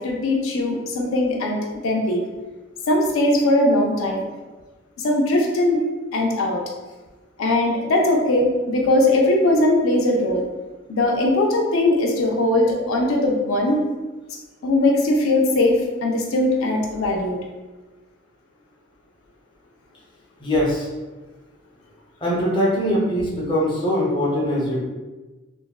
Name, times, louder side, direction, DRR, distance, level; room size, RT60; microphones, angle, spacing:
voice 1, 0.0-1.6 1.8-2.3 2.9-4.2 5.0-5.8 6.1-6.6 7.4-10.5 10.9-13.8 14.6-17.4, left 1 dB, 80° left, 0 dB, 0.4 m, -20 dB
voice 2, 20.4-20.9 22.2-24.8, equal, 25° left, -5 dB, 0.6 m, -22 dB
3.4 x 2.0 x 2.2 m, 1.2 s
head